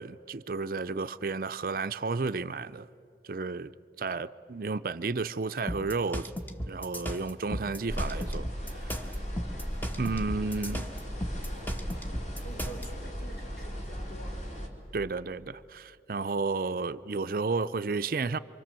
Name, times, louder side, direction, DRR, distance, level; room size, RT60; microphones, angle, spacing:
voice 1, 0.0-2.9 3.2-3.7 4.0-6.3 6.7-8.5 8.7-9.0 10.0-10.9 14.9-18.4, right 4 dB, 50° right, 0.5 m, -32 dB
sound 1, 5.7-12.9, equal, 10° left, 1.1 m, -35 dB
sound 2, 7.9-14.7, equal, 40° left, 3.3 m, -37 dB
voice 2, 12.0-14.5, right 2 dB, 65° left, 4.6 m, -48 dB
27.0 x 24.5 x 7.6 m
head